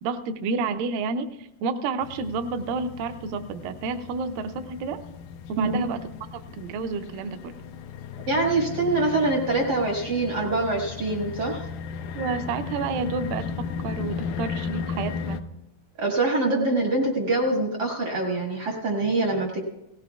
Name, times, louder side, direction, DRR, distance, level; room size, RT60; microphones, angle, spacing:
voice 1, 0.0-5.0 5.5-7.6 12.1-15.4, right 4 dB, 80° right, 9 dB, 2.2 m, -30 dB
sound 1, 2.0-15.4, left 6 dB, 90° left, 1.8 m, -36 dB
voice 2, 8.3-11.7 16.0-19.6, right 2 dB, 55° right, 0 dB, 1.1 m, -24 dB
18.0 x 16.5 x 2.3 m, 0.88 s
omnidirectional pair, 4.3 m